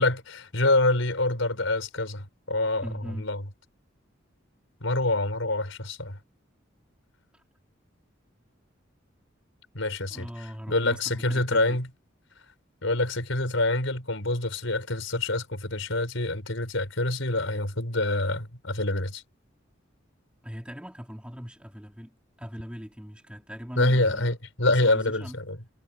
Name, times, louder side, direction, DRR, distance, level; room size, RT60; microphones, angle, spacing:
voice 1, 0.0-3.4 4.8-6.2 9.7-10.3 10.7-11.9 12.8-19.2 23.8-25.6, left 2 dB, 90° left, 5.4 m, -26 dB
voice 2, 2.8-3.3 10.1-11.8 20.4-24.3 24.7-25.4, equal, 5° right, 4.5 m, -40 dB
head